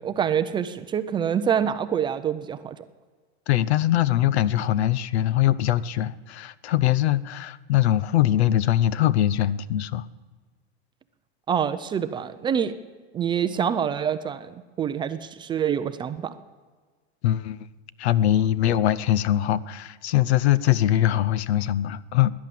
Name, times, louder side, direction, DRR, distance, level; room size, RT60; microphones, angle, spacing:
voice 1, 0.0-2.8 11.5-12.8 13.1-16.3, right 8 dB, 15° right, 0.4 m, -26 dB
voice 2, 3.5-10.0 17.2-17.6 18.0-22.3, left 12 dB, 80° left, 0.8 m, -22 dB
16.5 x 10.5 x 7.6 m
supercardioid pair, 140°, 32 cm